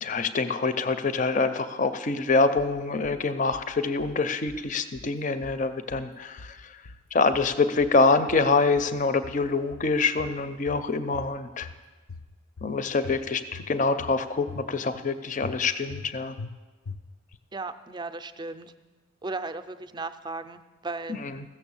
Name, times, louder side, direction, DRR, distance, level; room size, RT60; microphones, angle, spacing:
voice 1, 0.0-6.8 7.1-11.7 12.6-16.4 21.1-21.4, left 3 dB, 35° left, 11 dB, 0.5 m, -25 dB
sound 1, 2.6-3.2 3.5-4.2 4.5-5.2 5.4-6.1 6.4-7.1 7.3-8.0 8.3-9.0 9.2-9.9 10.2-10.9 11.1-11.8 12.1-12.7 13.0-13.7 14.0-14.6 14.9-15.1 15.4-16.1 16.4-16.5 16.9-17.4, left 4 dB, 85° left, 0.5 m, -43 dB
voice 2, 17.5-18.7 19.2-21.2, right 3 dB, 20° right, 10 dB, 0.4 m, -36 dB
15.5 x 6.8 x 7.0 m, 1.3 s
head